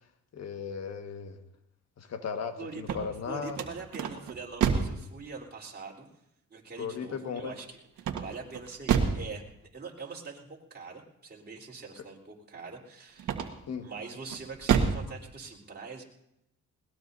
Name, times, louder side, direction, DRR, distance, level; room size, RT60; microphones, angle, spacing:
voice 1, 0.3-1.4 2.0-3.6 6.8-7.5 13.7-13.9, left 6 dB, 60° left, 6 dB, 1.7 m, -36 dB
voice 2, 2.6-3.0 3.2-6.1 6.5-9.4 9.7-13.3 13.8-16.0, right 4 dB, 35° right, -2 dB, 3.8 m, -43 dB
sound 1, 2.7-5.0 8.0-9.3 13.2-13.8 14.3-15.1, right 7 dB, 80° right, 1.6 m, -28 dB
21.5 x 19.0 x 2.7 m, 0.82 s
cardioid pair, 90°, 30 cm